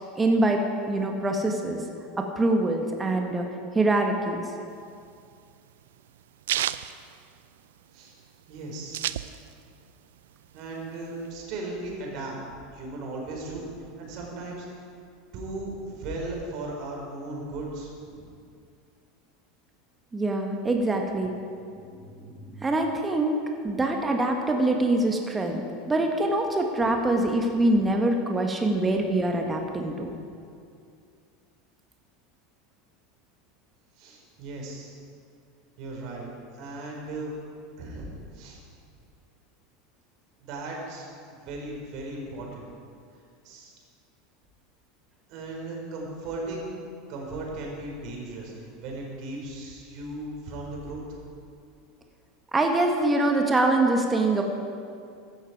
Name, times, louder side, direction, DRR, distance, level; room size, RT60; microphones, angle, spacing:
voice 1, 0.2-1.8 2.2-3.4 3.7-4.4 20.1-21.3 21.7-21.8 22.3-30.1 52.5-54.4, right 2 dB, 15° right, 2 dB, 1.6 m, -24 dB
sound 1, 4.7-7.9 8.2-8.3 8.5-9.8 10.1-11.3, right 12 dB, 70° right, 0.4 m, -31 dB
voice 2, 8.5-9.3 10.5-12.4 12.7-14.9 15.3-18.3 34.0-35.0 35.8-37.3 37.8-38.6 40.4-42.7 43.4-43.7 45.3-46.7 47.1-51.0, right 2 dB, 50° right, -1 dB, 4.4 m, -37 dB
15.0 x 13.0 x 4.9 m, 2.4 s
figure-of-eight pair, 80°, 0 cm